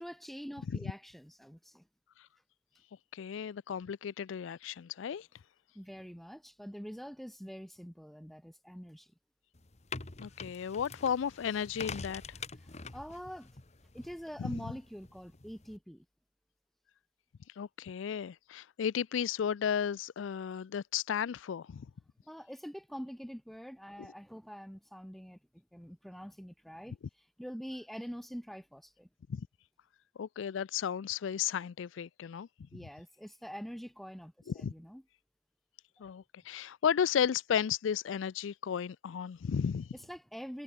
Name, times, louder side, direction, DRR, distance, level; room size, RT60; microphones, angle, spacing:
voice 1, 0.0-1.9 5.8-9.1 12.7-13.5 13.9-16.1 22.3-25.4 25.7-26.9 27.4-29.1 32.7-35.0 40.1-40.6, equal, ahead, 3.5 m, -45 dB
voice 2, 3.1-5.3 10.2-12.2 14.4-14.5 17.6-21.9 29.3-29.5 30.2-32.5 34.6-34.7 36.0-39.9, left 8 dB, 85° left, 0.4 m, -34 dB
sound 1, 9.5-15.8, left 4 dB, 35° left, 1.2 m, -46 dB
head